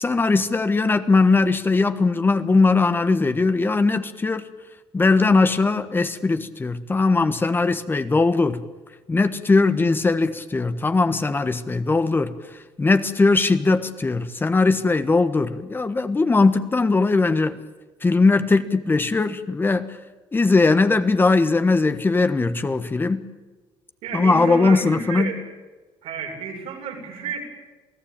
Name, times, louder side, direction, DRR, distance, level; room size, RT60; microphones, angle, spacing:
voice 1, 0.0-4.4 4.9-8.6 9.1-12.4 12.8-17.6 18.0-20.0 20.3-23.2 24.1-25.4, left 3 dB, 20° left, 1.3 m, -20 dB
voice 2, 24.0-25.4 26.0-27.4, right 6 dB, 85° right, 7.1 m, -31 dB
28.0 x 17.0 x 8.8 m
cardioid pair, 110°, 10 cm